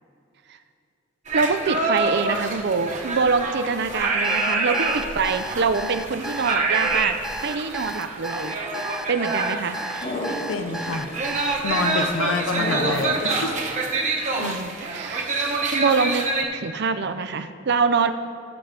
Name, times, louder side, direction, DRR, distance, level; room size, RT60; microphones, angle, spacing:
sound 1, 1.3-16.4, right 3 dB, 40° right, 1.2 m, -27 dB
voice 1, 1.3-7.2 7.4-8.5 9.1-9.7 14.3-15.3 15.7-18.1, right 4 dB, 60° right, 10 dB, 0.6 m, -24 dB
Alarm, 4.2-12.1, right 1 dB, ahead, 0.4 m, -34 dB
sound 2, 10.0-10.9 12.6-13.5, left 1 dB, 50° left, 2.6 m, -29 dB
voice 2, 10.5-11.1 11.6-13.6 14.4-14.6, left 3 dB, 80° left, 7 dB, 0.7 m, -27 dB
19.5 x 7.4 x 3.4 m, 2.4 s
head